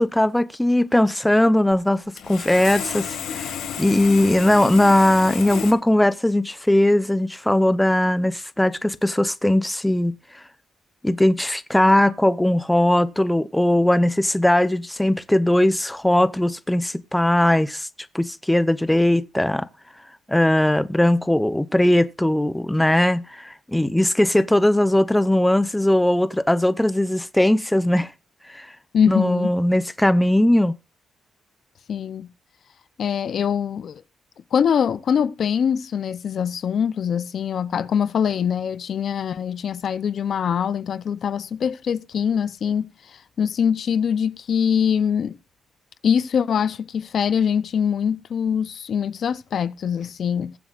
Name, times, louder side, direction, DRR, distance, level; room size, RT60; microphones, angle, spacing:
voice 1, 0.0-10.2 11.0-17.9 18.1-19.7 20.3-28.1 28.5-28.7 29.1-30.7, left 1 dB, 5° left, 0.7 m, -19 dB
Sawing, 1.7-1.8 2.2-5.7, left 8 dB, 85° left, 1.9 m, -31 dB
voice 2, 28.9-29.5 31.9-32.3 33.0-34.0 34.5-45.4 46.0-50.6, left 7 dB, 60° left, 0.5 m, -23 dB
21.0 x 7.8 x 2.4 m
cardioid pair, 115°, 0 cm